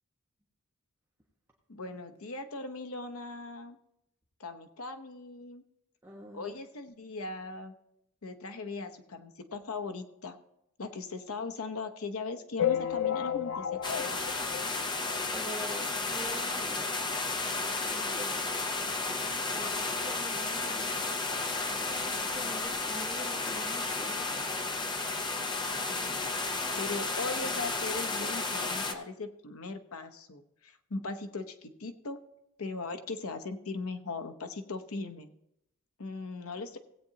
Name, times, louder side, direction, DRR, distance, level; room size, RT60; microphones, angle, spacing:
voice 1, 1.7-3.8 4.4-5.6 6.3-7.7 8.2-10.4 10.8-14.2 25.9-26.4 26.8-32.2 32.6-35.3 36.0-36.8, left 3 dB, 80° left, 8 dB, 0.9 m, -39 dB
voice 2, 6.0-6.5 15.3-16.9 17.8-18.6 19.5-21.2 21.8-24.4, equal, 15° right, -3 dB, 1.3 m, -45 dB
sound 1, 12.6-15.4 15.9-16.0 16.2-16.4 16.6-16.7 17.6-17.7 18.2-18.3, left 10 dB, 60° left, 0.4 m, -32 dB
sound 2, 13.8-28.9, left 3 dB, 20° left, 0.7 m, -33 dB
17.0 x 8.6 x 2.8 m, 0.82 s
head